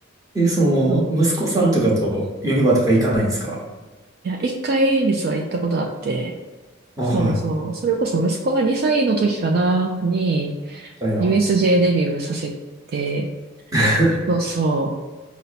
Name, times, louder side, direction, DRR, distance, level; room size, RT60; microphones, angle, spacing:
voice 1, 0.3-3.6 7.0-7.4 11.0-11.3 13.7-14.2, right 1 dB, 15° right, -5 dB, 1.0 m, -19 dB
voice 2, 0.9-1.2 4.2-6.3 7.1-10.9 11.2-12.5 12.9-13.3 14.3-14.9, right 3 dB, 50° right, 1 dB, 0.3 m, -21 dB
5.4 x 2.0 x 4.1 m, 1.3 s
head